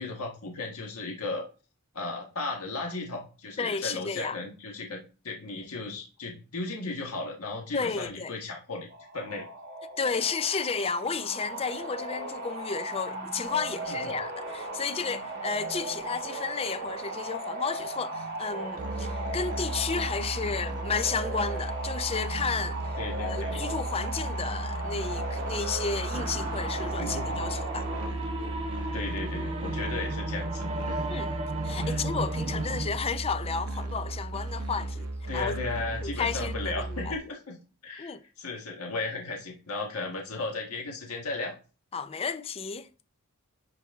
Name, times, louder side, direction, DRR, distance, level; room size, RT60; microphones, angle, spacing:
voice 1, 0.0-1.5 1.9-8.9 9.1-9.5 13.9-14.1 23.0-23.6 27.0-27.4 28.9-31.0 31.9-32.0 35.3-37.6 37.8-41.5, left 3 dB, 80° left, 1.5 m, -35 dB
voice 2, 3.6-4.4 7.7-8.3 10.0-22.8 23.2-27.9 31.1-31.3 31.6-35.6 36.0-37.1 38.0-38.2 41.9-42.9, left 5 dB, 25° left, 0.4 m, -32 dB
sound 1, 8.9-28.1, right 2 dB, 50° right, 2.5 m, -37 dB
Musical instrument, 18.8-37.1, right 1 dB, 75° right, 0.8 m, -35 dB
sound 2, 26.1-32.9, right 2 dB, 30° right, 1.4 m, -35 dB
10.5 x 4.1 x 3.5 m
head